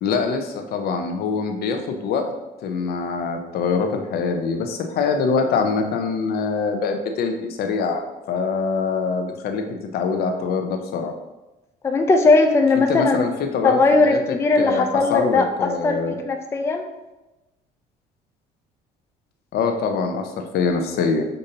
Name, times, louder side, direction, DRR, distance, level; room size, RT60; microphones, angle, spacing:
voice 1, 0.0-2.3 2.6-11.1 12.7-14.2 14.6-16.2 19.5-21.3, left 5 dB, 65° left, 5 dB, 0.6 m, -24 dB
voice 2, 11.8-13.2 13.6-16.0 16.2-16.8, left 3 dB, 15° left, 5 dB, 0.3 m, -18 dB
6.5 x 2.6 x 2.7 m, 1.1 s
cardioid pair, 110°, 17 cm